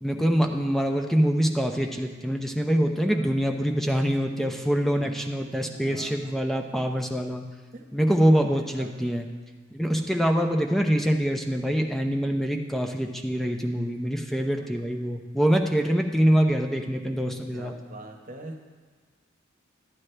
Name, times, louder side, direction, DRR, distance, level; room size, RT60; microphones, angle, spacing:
voice 1, 0.0-7.4 7.9-9.3 9.7-17.7, equal, ahead, 3 dB, 0.6 m, -24 dB
voice 2, 3.0-3.3 4.8-5.2 5.5-6.3 7.7-7.8 8.5-9.1 14.6-14.7 17.5-18.6, right 2 dB, 45° right, 2 dB, 1.1 m, -44 dB
13.0 x 9.4 x 3.3 m, 1.5 s
head